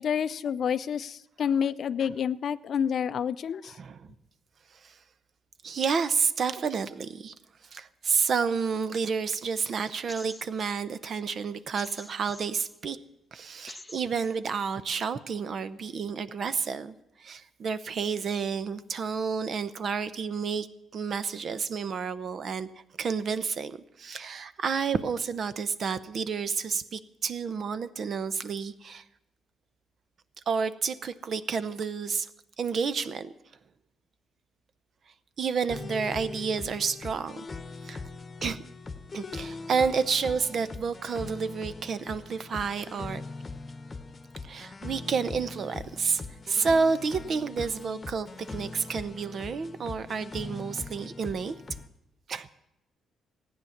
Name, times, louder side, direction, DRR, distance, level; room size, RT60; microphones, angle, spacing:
voice 1, 0.0-3.7, left 8 dB, 60° left, 15 dB, 0.4 m, -28 dB
voice 2, 3.6-4.1 4.8-4.9 5.6-7.3 7.7-13.0 13.3-20.7 20.9-22.7 23.0-29.0 30.5-32.3 32.6-33.3 35.4-37.5 37.8-38.0 38.4-38.6 39.1-43.2 44.4-46.2 46.5-51.6 52.3-52.5, right 5 dB, 55° right, 13 dB, 0.7 m, -30 dB
sound 1, 10.1-10.8 11.8-12.8 13.7-14.4, left 2 dB, 10° left, 0.8 m, -46 dB
sound 2, 35.7-51.9, left 3 dB, 30° left, 1.0 m, -41 dB
15.0 x 9.4 x 7.2 m, 0.85 s
cardioid pair, 90°, 0 cm